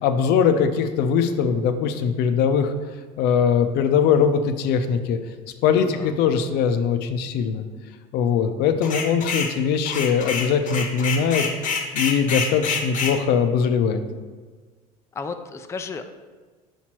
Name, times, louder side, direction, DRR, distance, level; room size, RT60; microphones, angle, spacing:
voice 1, 0.0-2.7 3.2-5.2 5.6-7.7 8.1-11.5 11.9-14.0, left 6 dB, 65° left, 8 dB, 0.5 m, -21 dB
voice 2, 5.7-6.1 15.1-16.1, left 4 dB, 15° left, 7 dB, 0.4 m, -33 dB
sound 1, 8.8-9.5 9.9-13.2, left 5 dB, 45° left, 0.9 m, -27 dB
5.1 x 4.5 x 4.4 m, 1.4 s
supercardioid pair, 90°, 18 cm